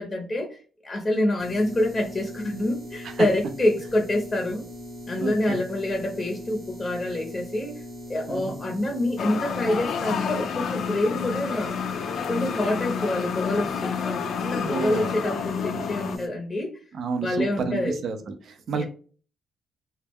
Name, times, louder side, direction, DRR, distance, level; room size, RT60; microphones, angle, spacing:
voice 1, 0.0-4.6 5.1-7.8 8.1-11.7 12.3-16.7 17.2-18.0 18.7-18.8, left 1 dB, 25° left, 2 dB, 0.6 m, -27 dB
sound 1, 1.4-16.3, left 1 dB, 30° right, 0.8 m, -40 dB
voice 2, 5.2-5.6 8.3-8.6 14.6-15.1 16.9-18.8, right 5 dB, 60° right, 7 dB, 0.4 m, -30 dB
sound 2, 9.2-16.2, left 7 dB, 70° left, 0.3 m, -30 dB
2.2 x 2.1 x 3.4 m, 0.39 s
cardioid pair, 90°, 0 cm